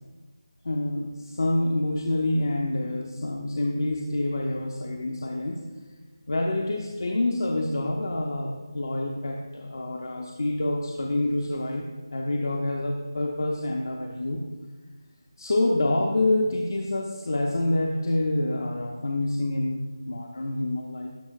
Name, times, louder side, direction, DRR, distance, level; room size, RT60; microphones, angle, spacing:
voice 1, 0.6-5.6 6.3-14.4 15.4-21.1, left 1 dB, 60° left, 0 dB, 0.7 m, -27 dB
11.5 x 6.2 x 2.4 m, 1.3 s
figure-of-eight pair, 160°, 2 cm